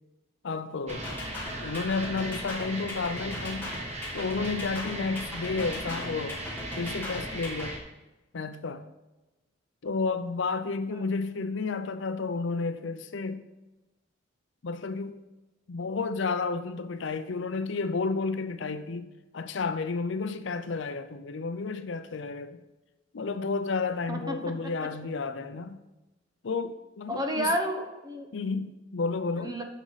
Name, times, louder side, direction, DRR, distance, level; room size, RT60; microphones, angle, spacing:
voice 1, 0.4-1.0 1.6-3.7 4.1-6.4 6.8-7.8 8.3-8.8 9.8-13.5 14.6-15.2 15.7-19.1 19.3-22.6 23.1-25.8 26.4-27.5 28.3-29.6, left 4 dB, 65° left, 0.5 m, -31 dB
sound 1, 0.9-7.7, left 1 dB, 10° left, 2.2 m, -39 dB
sound 2, 0.9-7.8, right 2 dB, 35° right, 1.2 m, -38 dB
voice 2, 27.1-28.3 29.4-29.6, equal, 20° right, 0.9 m, -31 dB
10.0 x 6.2 x 4.0 m
head